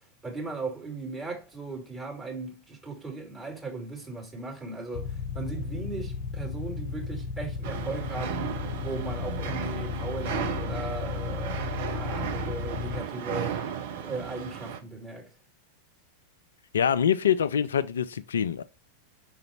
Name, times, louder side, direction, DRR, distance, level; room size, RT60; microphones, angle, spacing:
voice 1, 0.2-8.5 8.8-13.6 14.0-15.3, right 3 dB, 15° right, 2.7 m, -37 dB
sound 1, 4.9-13.0, left 6 dB, 50° left, 0.9 m, -34 dB
sound 2, 7.6-14.8, right 8 dB, 55° right, 0.8 m, -35 dB
voice 2, 16.7-18.6, left 8 dB, 65° left, 0.4 m, -25 dB
5.7 x 3.9 x 4.3 m
figure-of-eight pair, 90°, 0 cm